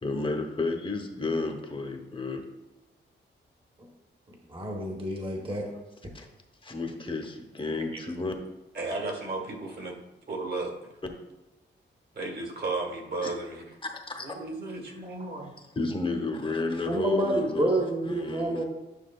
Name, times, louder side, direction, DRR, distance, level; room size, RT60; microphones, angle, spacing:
voice 1, 0.0-2.4 6.1-6.3 6.6-8.3 13.2-13.3 13.8-14.4 15.7-18.6, left 3 dB, 25° left, 4 dB, 1.0 m, -32 dB
voice 2, 4.5-5.7 16.9-18.6, right 1 dB, 25° right, 0 dB, 1.2 m, -28 dB
voice 3, 8.7-10.0 10.3-10.7 12.1-13.6 14.2-15.5, right 3 dB, 55° right, 0 dB, 1.7 m, -34 dB
10.0 x 6.0 x 2.3 m, 1.1 s
wide cardioid pair, 110°, 20 cm